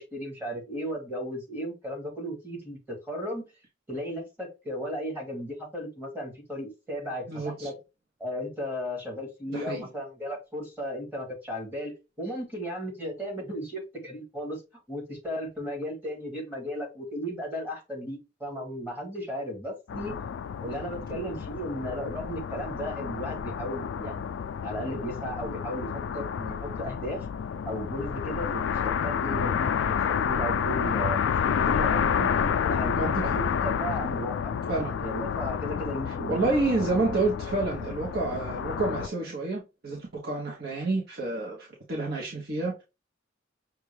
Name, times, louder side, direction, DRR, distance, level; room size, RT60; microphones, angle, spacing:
voice 1, 0.0-3.4 3.9-7.3 7.6-7.7 8.2-14.6 14.9-20.1 20.6-24.3 24.6-27.3 27.6-31.2 31.6-34.5 35.0-36.4, equal, 10° right, 1.7 m, -35 dB
voice 2, 7.3-7.7 9.5-9.9 32.9-33.4 34.7-34.9 36.1-42.8, right 2 dB, 55° right, 1.0 m, -29 dB
sound 1, 19.9-39.1, left 7 dB, 70° left, 0.3 m, -29 dB
6.0 x 2.4 x 3.2 m
head